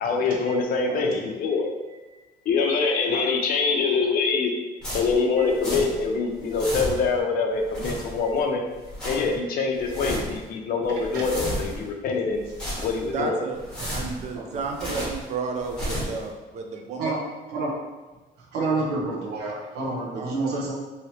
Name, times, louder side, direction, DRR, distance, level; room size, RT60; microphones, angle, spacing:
voice 1, 0.0-1.7 2.5-4.5 4.9-8.6 9.0-12.4 12.8-13.4 14.9-15.0, left 4 dB, 60° left, 2 dB, 0.5 m, -24 dB
voice 2, 2.6-3.3 5.4-5.5 11.1-11.2 14.3-14.6 17.0-17.2 17.5-17.7 18.5-20.7, right 3 dB, 80° right, -3 dB, 0.9 m, -29 dB
sound 1, 4.8-6.1 6.3-7.2 7.6-8.4 8.7-9.4 9.8-10.4 10.8-11.9 12.3-13.2 13.5-15.3 15.6-16.2, equal, 5° left, 1.2 m, -33 dB
voice 3, 13.1-17.1 20.2-20.7, right 4 dB, 45° right, 4 dB, 0.4 m, -32 dB
3.0 x 2.8 x 2.8 m, 1.2 s
cardioid pair, 145°, 17 cm